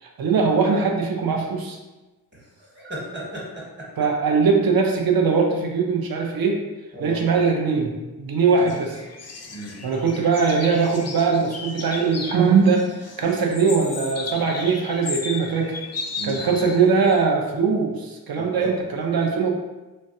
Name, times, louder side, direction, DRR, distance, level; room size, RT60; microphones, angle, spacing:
voice 1, 0.0-1.8 4.0-6.6 7.0-7.9 8.2-9.0 9.8-15.8 16.2-19.5, right 5 dB, 70° right, 1 dB, 0.6 m, -21 dB
voice 2, 2.7-3.9 6.9-7.2 9.5-9.7 16.1-16.4 18.3-18.7, right 1 dB, 30° right, -5 dB, 1.2 m, -35 dB
sound 1, 8.4-17.3, left 4 dB, 45° left, 0.4 m, -36 dB
3.1 x 2.3 x 2.7 m, 1.1 s
wide cardioid pair, 60°, 38 cm